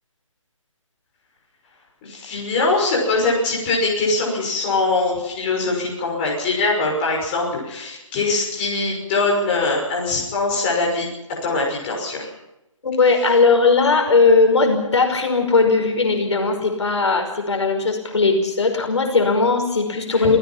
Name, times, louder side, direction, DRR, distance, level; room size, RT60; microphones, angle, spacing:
voice 1, 2.0-11.1 11.4-12.3 20.1-20.3, left 3 dB, 20° left, -3 dB, 6.0 m, -22 dB
voice 2, 12.8-20.4, left 4 dB, 55° left, 4 dB, 5.5 m, -18 dB
28.0 x 18.0 x 5.8 m, 0.91 s
figure-of-eight pair, 165°, 17 cm